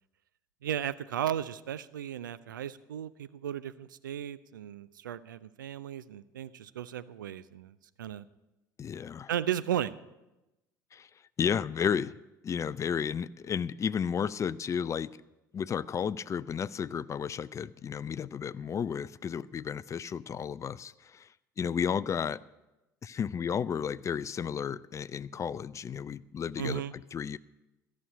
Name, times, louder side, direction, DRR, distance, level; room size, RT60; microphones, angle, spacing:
voice 1, 0.6-8.3 9.3-9.9 26.6-26.9, right 10 dB, 80° right, 17 dB, 0.4 m, -35 dB
voice 2, 8.8-9.3 10.9-11.1 11.4-15.1 15.5-21.3 21.6-22.4 23.0-26.8 27.1-27.4, left 7 dB, 30° left, 19 dB, 0.4 m, -33 dB
13.5 x 6.3 x 9.5 m, 0.99 s
figure-of-eight pair, 65°, 10 cm